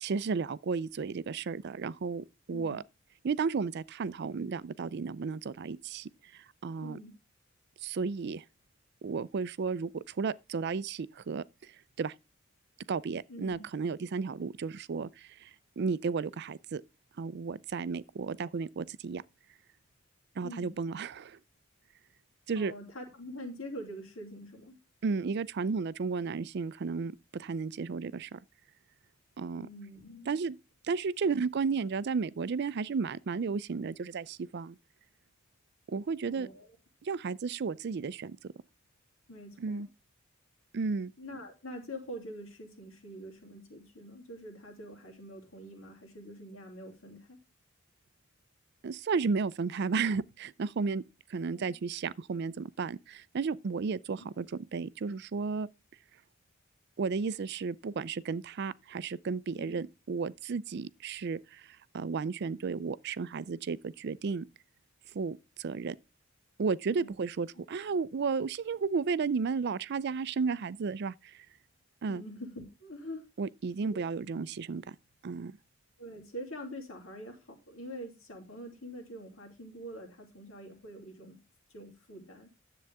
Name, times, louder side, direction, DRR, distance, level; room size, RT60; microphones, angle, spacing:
voice 1, 0.0-2.8 3.2-7.0 7.8-8.4 9.0-12.1 12.9-16.8 17.2-19.2 20.4-21.4 22.5-22.7 25.0-28.4 29.4-29.7 30.3-30.6 30.8-34.8 35.9-36.5 37.0-38.5 39.6-39.9 40.7-41.1 48.8-51.0 51.3-55.7 57.0-64.5 65.1-66.0 66.6-71.5 72.0-72.2 73.4-75.0 75.2-75.5, right 5 dB, 55° right, 0.4 m, -33 dB
voice 2, 6.8-7.1 13.3-13.6 20.4-20.7 22.5-24.8 29.6-30.4 31.2-31.3 36.2-36.7 39.3-39.9 41.2-47.4 51.5-51.8 54.1-54.3 59.6-59.8 66.9-67.1 72.1-73.2 73.8-74.0 76.0-81.4 81.7-82.5, equal, 85° left, 3.0 m, -45 dB
10.5 x 7.7 x 3.5 m
head